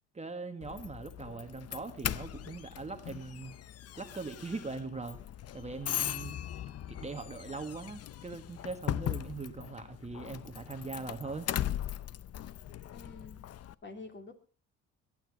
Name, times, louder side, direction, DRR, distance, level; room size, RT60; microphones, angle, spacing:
voice 1, 0.1-3.6 4.0-5.2 5.5-6.4 6.9-11.5, right 4 dB, 20° right, 7 dB, 1.3 m, -41 dB
Doorbell, 0.6-13.7, left 11 dB, 55° left, 0.6 m, -39 dB
voice 2, 12.9-13.4 13.8-14.3, left 3 dB, 35° left, 5 dB, 3.1 m, -47 dB
22.0 x 9.2 x 4.9 m, 0.38 s
cardioid pair, 90°, 30 cm